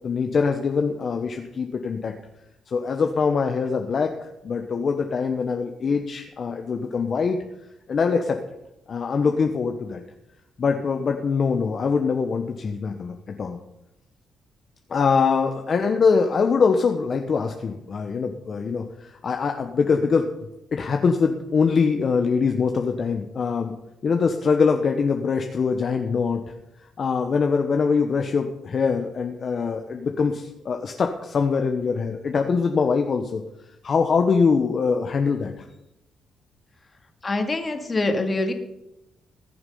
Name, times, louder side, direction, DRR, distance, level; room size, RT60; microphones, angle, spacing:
voice 1, 0.0-2.1 2.7-4.1 4.4-7.4 7.9-8.4 8.9-10.0 10.6-13.6 14.9-20.3 20.7-23.7 24.0-26.4 27.0-33.4 33.8-35.7, left 5 dB, 45° left, 4 dB, 1.0 m, -23 dB
voice 2, 37.2-38.5, left 2 dB, 30° left, 5 dB, 2.2 m, -24 dB
20.0 x 6.9 x 5.5 m, 0.91 s
cardioid pair, 90°, 0 cm